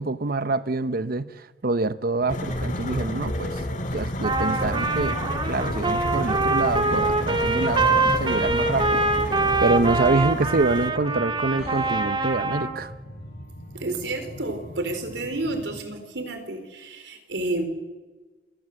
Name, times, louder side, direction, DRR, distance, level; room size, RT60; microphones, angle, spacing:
voice 1, 0.0-3.5 3.9-5.2 5.5-9.1 9.6-12.9, right 3 dB, 55° right, 0.8 m, -26 dB
sound 1, 2.2-15.8, left 1 dB, 65° left, 5.9 m, -40 dB
sound 2, 2.3-10.9, left 1 dB, 45° left, 2.0 m, -31 dB
Trumpet, 4.2-12.7, right 3 dB, 30° right, 2.0 m, -24 dB
voice 2, 13.7-17.6, right 2 dB, 85° right, 3.9 m, -30 dB
27.0 x 19.5 x 7.7 m
head